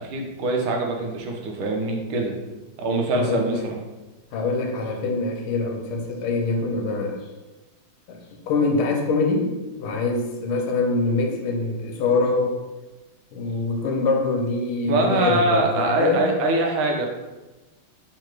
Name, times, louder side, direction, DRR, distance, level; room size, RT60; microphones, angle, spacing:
voice 1, 0.0-2.4 2.8-3.8 14.9-17.1, right 2 dB, 80° right, 2 dB, 1.6 m, -23 dB
voice 2, 3.1-3.7 4.3-7.2 8.1-9.5 9.8-12.6 13.3-16.3, left 3 dB, 85° left, 3 dB, 1.6 m, -24 dB
3.9 x 2.9 x 4.6 m, 1.1 s
omnidirectional pair, 2.4 m